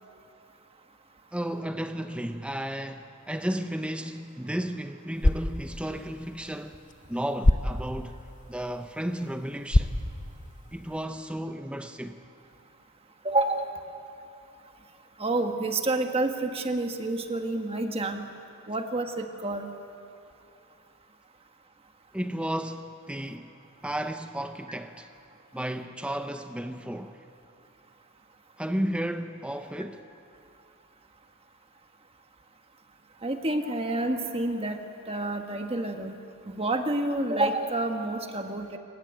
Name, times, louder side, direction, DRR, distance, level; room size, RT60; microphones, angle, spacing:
voice 1, 1.3-6.8 7.1-8.2 8.5-9.9 10.7-12.2 22.1-23.5 23.8-25.1 25.5-27.2 28.6-30.0, right 1 dB, 5° right, 0.5 m, -33 dB
sound 1, 5.0-11.1, left 1 dB, 35° left, 0.8 m, -29 dB
voice 2, 13.2-13.7 15.2-18.3 18.7-19.7 33.2-34.8 35.1-36.2 36.5-38.8, right 2 dB, 25° right, 1.4 m, -28 dB
26.5 x 15.0 x 9.2 m
head